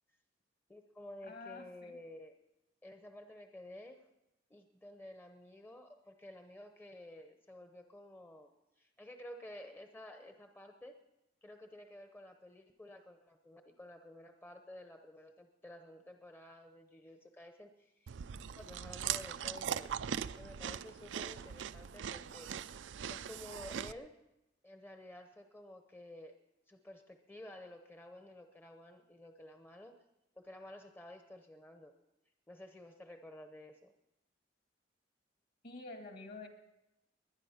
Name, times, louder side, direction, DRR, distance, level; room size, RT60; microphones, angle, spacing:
voice 1, 0.7-2.3 2.8-4.0 4.5-8.5 8.8-11.0 11.4-18.1 18.4-19.9 20.4-24.1 24.6-26.3 26.7-30.0 30.4-31.9 32.5-33.9, left 1 dB, 10° left, 5 dB, 0.8 m, -52 dB
voice 2, 1.2-2.0 35.6-36.5, left 3 dB, 55° left, 4 dB, 2.2 m, -48 dB
Chewing mastication, 18.1-23.9, right 8 dB, 75° right, 0.4 m, -40 dB
21.5 x 10.0 x 5.7 m, 0.94 s
head